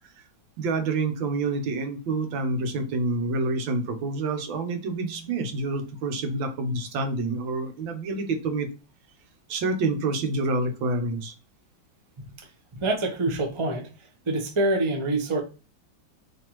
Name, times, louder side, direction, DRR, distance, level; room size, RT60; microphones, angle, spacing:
voice 1, 0.6-8.7 9.5-11.3, right 3 dB, 90° right, 6 dB, 1.6 m, -27 dB
voice 2, 12.2-12.5 12.7-13.9 14.3-15.4, right 2 dB, 50° right, 3 dB, 0.3 m, -26 dB
5.2 x 3.3 x 3.0 m, 0.33 s
omnidirectional pair, 2.1 m